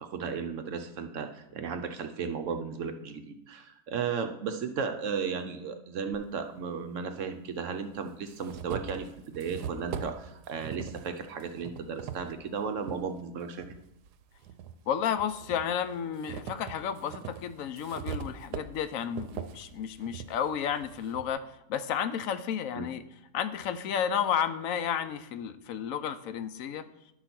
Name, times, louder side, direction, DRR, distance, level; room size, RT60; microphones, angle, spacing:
voice 1, 0.0-13.7 22.7-22.9, right 6 dB, 65° right, 8 dB, 0.9 m, -35 dB
sound 1, 6.1-6.2 7.3-7.4 7.9-13.0 13.5-14.7 15.2-21.3, right 8 dB, 80° right, 1.2 m, -41 dB
voice 2, 14.9-21.4 21.7-23.0 23.3-26.8, left 8 dB, 70° left, 11 dB, 0.9 m, -32 dB
11.0 x 4.0 x 5.9 m, 0.83 s
omnidirectional pair, 1.7 m